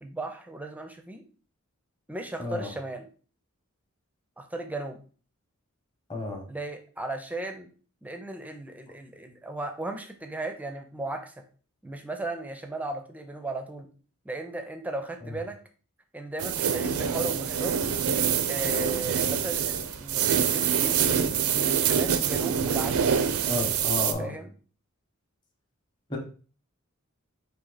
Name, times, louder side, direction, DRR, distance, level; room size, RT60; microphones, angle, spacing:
voice 1, 0.0-1.2 2.1-3.1 4.4-5.0 6.5-7.7 8.0-11.4 11.8-13.9 14.2-15.6 16.1-17.8 18.5-23.2 24.2-24.5, right 2 dB, 5° right, 6 dB, 0.4 m, -36 dB
voice 2, 2.4-2.7 6.1-6.4 15.2-15.3 23.5-24.3 26.1-26.2, left 1 dB, 20° left, 2 dB, 0.9 m, -32 dB
sound 1, 16.4-24.1, right 7 dB, 75° right, 0.5 m, -25 dB
4.2 x 2.8 x 3.8 m, 0.39 s
head